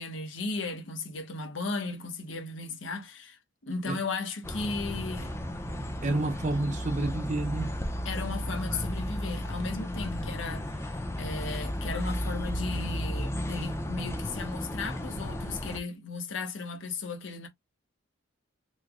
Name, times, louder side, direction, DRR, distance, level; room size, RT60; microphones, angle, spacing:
voice 1, 0.0-5.3 8.0-10.8 11.2-17.5, left 3 dB, 75° left, 0.9 m, -36 dB
sound 1, 4.4-15.8, equal, 15° left, 0.5 m, -34 dB
voice 2, 6.0-7.7, right 2 dB, 40° right, 0.8 m, -29 dB
3.2 x 2.1 x 3.6 m
head